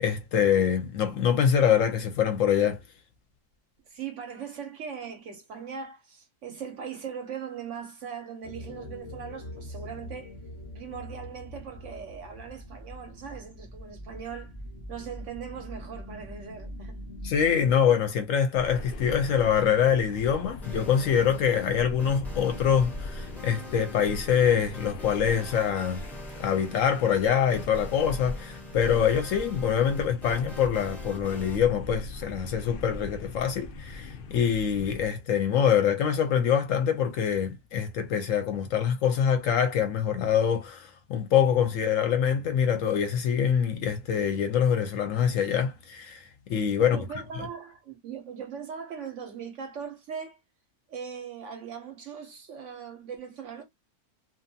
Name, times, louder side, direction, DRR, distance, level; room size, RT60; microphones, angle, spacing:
voice 1, 0.0-2.8 17.2-26.0 26.4-46.2 46.5-47.0, left 8 dB, 70° left, 0.8 m, -25 dB
voice 2, 3.9-10.3 10.7-14.5 14.9-17.0 46.8-50.4 50.9-53.6, right 7 dB, 65° right, 0.8 m, -40 dB
sound 1, 8.4-17.7, equal, 30° left, 0.8 m, -43 dB
sound 2, 18.6-35.1, left 2 dB, 85° left, 0.4 m, -40 dB
sound 3, 20.6-31.6, left 1 dB, ahead, 0.4 m, -45 dB
2.6 x 2.2 x 2.6 m
omnidirectional pair, 1.6 m